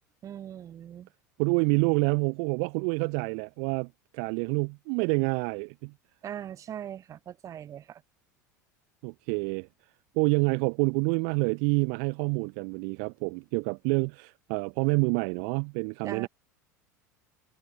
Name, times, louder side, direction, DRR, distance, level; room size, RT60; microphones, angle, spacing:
voice 1, 0.2-1.1 6.2-8.0 16.0-16.3, right 10 dB, 35° right, 7.5 m, -40 dB
voice 2, 1.4-5.9 9.0-9.7 10.2-16.3, right 40 dB or more, 55° right, 3.8 m, -27 dB
figure-of-eight pair, 75°, 9 cm